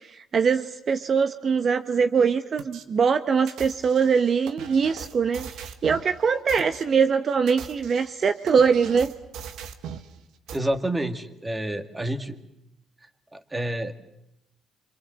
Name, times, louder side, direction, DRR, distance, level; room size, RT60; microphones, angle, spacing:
voice 1, 0.3-9.1, right 6 dB, 50° right, 10 dB, 1.0 m, -22 dB
sound 1, 2.6-2.8 3.5-6.1 6.5-6.8 7.3-10.1 10.5-10.6, right 7 dB, 75° right, 1.7 m, -40 dB
voice 2, 10.5-12.4 13.3-13.9, right 1 dB, 15° right, 9 dB, 2.3 m, -28 dB
26.5 x 25.5 x 7.7 m, 0.82 s
supercardioid pair, 75°, 0 cm